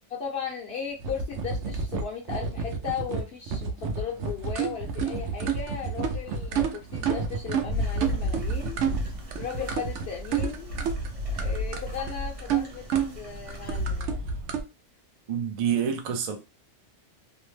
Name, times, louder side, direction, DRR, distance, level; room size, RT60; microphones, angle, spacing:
voice 1, 0.1-8.8 9.4-10.9 11.2-14.3, left 7 dB, 65° left, 0.8 m, -36 dB
sound 1, 1.0-14.6, right 4 dB, 85° right, 0.9 m, -29 dB
sound 2, 7.7-14.0, equal, 35° right, 0.8 m, -43 dB
voice 2, 15.3-16.4, right 8 dB, 55° right, 0.4 m, -27 dB
2.7 x 2.1 x 3.1 m
omnidirectional pair, 1.2 m